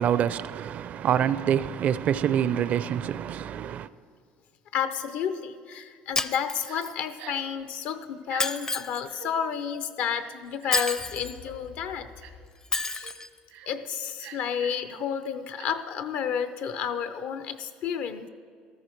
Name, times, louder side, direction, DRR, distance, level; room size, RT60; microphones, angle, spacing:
voice 1, 0.0-3.9, right 9 dB, 50° right, 0.4 m, -26 dB
voice 2, 4.7-12.1 12.9-13.1 13.7-18.3, left 7 dB, 70° left, 0.7 m, -31 dB
Shatter, 6.2-7.1 8.4-9.1 10.7-11.4 12.7-13.3, left 3 dB, 20° left, 0.5 m, -29 dB
Crying sobbing, 6.7-6.8 7.2-7.5 8.2-8.4 9.1-9.3 10.2-10.9 11.4-11.6 12.2-12.5 12.8-13.1 13.5-13.7 14.2-14.8 15.6-15.7, right 10 dB, 85° right, 1.1 m, -45 dB
sound 1, 11.0-13.3, left 6 dB, 85° left, 2.6 m, -49 dB
14.0 x 13.0 x 4.5 m
supercardioid pair, 100°, 3 cm